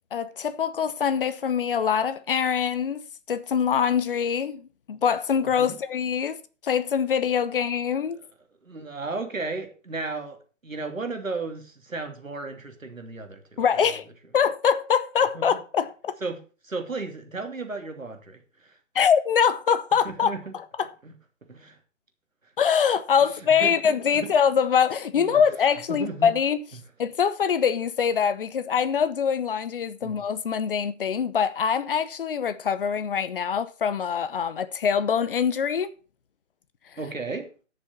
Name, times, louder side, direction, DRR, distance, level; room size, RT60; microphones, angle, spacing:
voice 1, 0.1-3.0 3.3-6.4 6.6-8.2 13.6-14.1 14.3-16.1 18.9-20.9 22.6-26.6 27.0-35.9, left 7 dB, 45° left, 0.9 m, -24 dB
voice 2, 8.6-10.4 10.6-13.9 15.3-15.5 16.2-16.4 16.6-18.4 20.0-20.5 21.0-21.1 21.5-21.8 23.6-24.3 25.1-25.4 25.9-26.3 30.0-30.2 37.0-37.5, right 3 dB, 85° right, 2.9 m, -34 dB
10.5 x 7.0 x 6.0 m
figure-of-eight pair, 140°, 39 cm